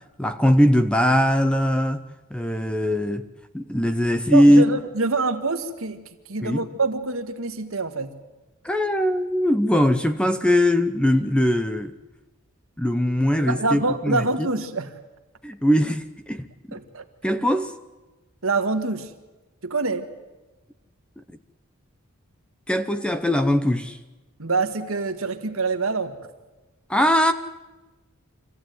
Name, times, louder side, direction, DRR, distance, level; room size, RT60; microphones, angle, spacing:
voice 1, 0.2-2.0 2.3-3.2 3.5-4.6 6.4-6.6 8.6-11.9 12.8-14.5 15.4-16.8 17.2-17.7 21.2-21.3 22.7-24.0 26.9-27.3, equal, 5° left, 10 dB, 0.8 m, -20 dB
voice 2, 4.3-8.1 13.5-14.9 16.7-17.0 18.4-19.1 19.6-20.1 24.4-26.2, right 3 dB, 70° right, 7 dB, 1.7 m, -26 dB
26.0 x 15.0 x 9.3 m, 1.1 s
head